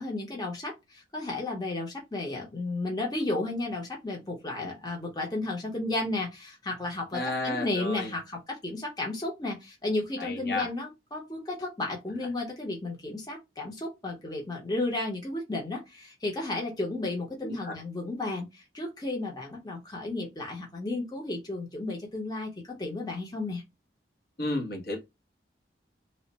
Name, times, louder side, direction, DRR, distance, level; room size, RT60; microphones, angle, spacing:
voice 1, 0.0-23.6, left 2 dB, 25° left, 0.8 m, -33 dB
voice 2, 7.1-8.1 10.2-10.7 17.4-17.8 24.4-25.0, left 2 dB, 60° left, 1.0 m, -32 dB
3.1 x 2.1 x 4.0 m
head